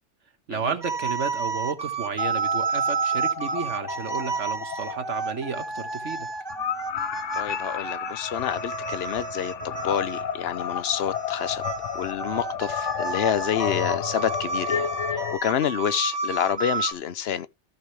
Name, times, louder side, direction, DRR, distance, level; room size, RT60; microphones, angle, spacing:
voice 1, 0.5-6.3, right 5 dB, 85° right, 1.7 m, -32 dB
sound 1, 0.8-10.4 11.1-16.9, right 5 dB, 25° right, 0.6 m, -31 dB
sound 2, 2.2-15.4, left 9 dB, 85° left, 1.0 m, -32 dB
voice 2, 7.3-11.6 11.9-17.5, left 9 dB, 60° left, 0.9 m, -28 dB
14.0 x 5.4 x 3.1 m
omnidirectional pair, 1.2 m